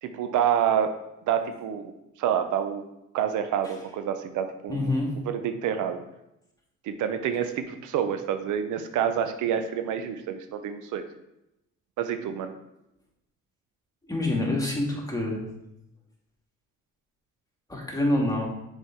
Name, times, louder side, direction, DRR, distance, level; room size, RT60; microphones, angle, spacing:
voice 1, 0.0-0.9 1.3-1.9 2.2-2.8 3.1-4.9 5.2-6.0 6.8-11.1 12.0-12.5, right 9 dB, 80° right, 8 dB, 0.7 m, -27 dB
voice 2, 4.7-5.2 14.1-15.4 17.7-18.5, left 1 dB, 10° left, -2 dB, 2.2 m, -26 dB
6.5 x 4.7 x 4.5 m, 0.87 s
cardioid pair, 90°, 30 cm